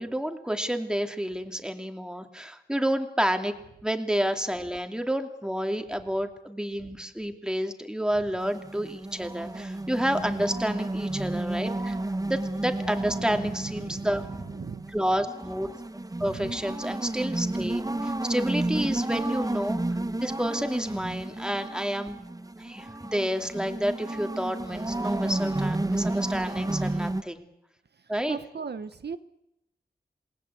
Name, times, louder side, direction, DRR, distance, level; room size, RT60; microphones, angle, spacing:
voice 1, 0.0-3.5 3.8-12.0 12.3-14.2 14.9-15.7 16.2-19.8 20.2-22.2 22.6-27.4 28.1-28.4, equal, 5° right, 5 dB, 2.6 m, -29 dB
sound 1, 8.4-27.2, right 2 dB, 20° right, 1.1 m, -32 dB
voice 2, 13.4-14.9 16.2-16.5 28.3-29.2, right 5 dB, 75° right, 11 dB, 1.1 m, -38 dB
28.0 x 20.0 x 8.4 m, 0.84 s
wide cardioid pair, 90°, 17 cm